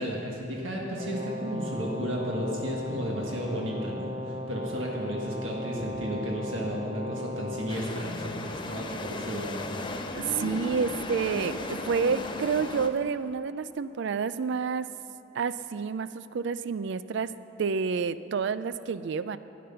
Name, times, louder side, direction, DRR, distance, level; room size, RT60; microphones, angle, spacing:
voice 1, 0.0-9.6, equal, 80° right, -2 dB, 1.6 m, -33 dB
Brass instrument, 0.9-7.9, left 1 dB, 30° right, 0.7 m, -37 dB
sound 1, 7.7-12.9, left 2 dB, 25° left, 0.6 m, -36 dB
voice 2, 10.2-14.9 15.3-17.3 17.6-19.4, right 5 dB, 65° right, 14 dB, 0.4 m, -29 dB
12.5 x 9.4 x 5.6 m, 2.9 s
head